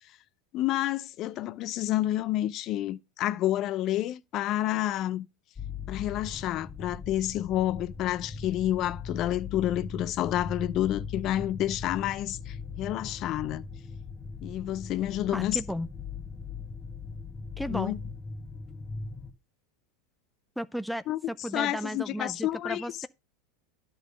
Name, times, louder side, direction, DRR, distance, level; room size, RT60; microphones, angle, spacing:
voice 1, 0.5-5.3 5.9-13.7 14.4-15.6 17.7-18.0 21.1-23.1, left 13 dB, 45° left, 0.6 m, -29 dB
sound 1, 5.5-19.3, left 5 dB, 20° left, 1.3 m, -40 dB
voice 2, 15.3-15.9 17.6-17.9 20.6-23.1, equal, ahead, 0.5 m, -34 dB
11.0 x 3.9 x 6.3 m
hypercardioid pair, 100°, 0 cm